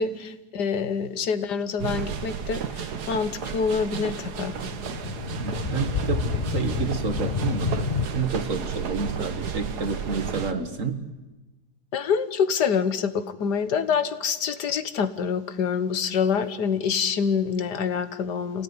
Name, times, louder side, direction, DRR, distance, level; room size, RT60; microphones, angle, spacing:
voice 1, 0.0-4.5 11.9-18.6, left 6 dB, 80° left, 12 dB, 1.8 m, -26 dB
sound 1, 1.8-10.5, right 7 dB, 70° right, 1.8 m, -32 dB
sound 2, 4.4-8.1, left 6 dB, 40° left, 0.9 m, -29 dB
voice 2, 5.3-11.0, right 5 dB, 50° right, 8 dB, 2.0 m, -30 dB
27.0 x 17.5 x 9.7 m, 1.1 s
omnidirectional pair, 1.8 m